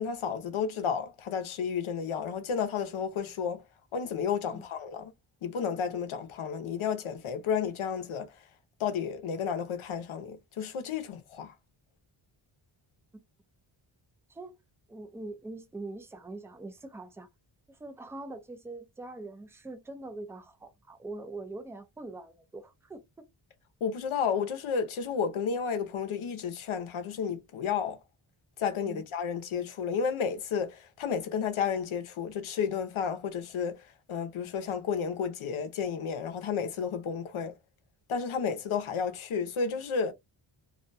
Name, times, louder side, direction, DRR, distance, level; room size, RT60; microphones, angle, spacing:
voice 1, 0.0-3.6 3.9-5.1 5.4-8.3 8.8-11.5 23.8-28.0 28.6-33.8 34.1-37.5 38.1-40.1, left 6 dB, 85° left, 0.8 m, -32 dB
voice 2, 14.9-17.3 17.7-23.2 28.8-29.0, right 2 dB, 5° right, 0.4 m, -43 dB
2.5 x 2.2 x 2.5 m
wide cardioid pair, 110°, 48 cm